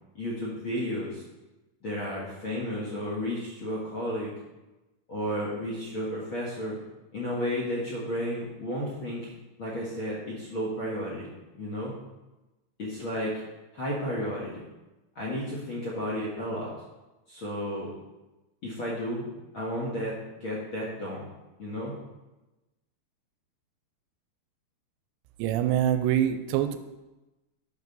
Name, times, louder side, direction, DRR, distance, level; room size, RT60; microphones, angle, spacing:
voice 1, 0.1-1.2 1.8-4.3 5.1-6.8 7.1-9.3 9.6-11.3 11.6-11.9 12.8-13.4 13.7-14.6 15.1-16.7 17.3-17.9 18.6-21.3 21.6-21.9, equal, 65° left, -4 dB, 1.2 m, -32 dB
voice 2, 25.4-26.8, right 11 dB, 85° right, 9 dB, 2.8 m, -25 dB
10.5 x 6.8 x 4.1 m, 1.0 s
omnidirectional pair, 5.1 m